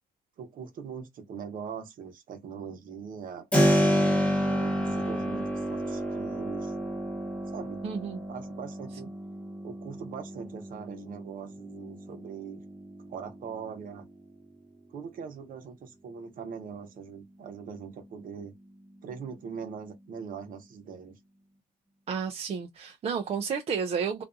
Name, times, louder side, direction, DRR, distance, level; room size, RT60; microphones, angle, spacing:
voice 1, 0.4-3.5 4.4-6.7 7.5-7.8 8.3-9.1 9.6-12.6 13.1-14.1 14.9-18.5 19.0-21.2, right 6 dB, 55° right, 0.9 m, -41 dB
Keyboard (musical), 3.5-14.2, equal, 5° left, 0.8 m, -30 dB
voice 2, 7.8-8.2 22.1-24.2, right 6 dB, 35° right, 0.5 m, -31 dB
2.5 x 2.3 x 2.5 m
cardioid pair, 110°, 17 cm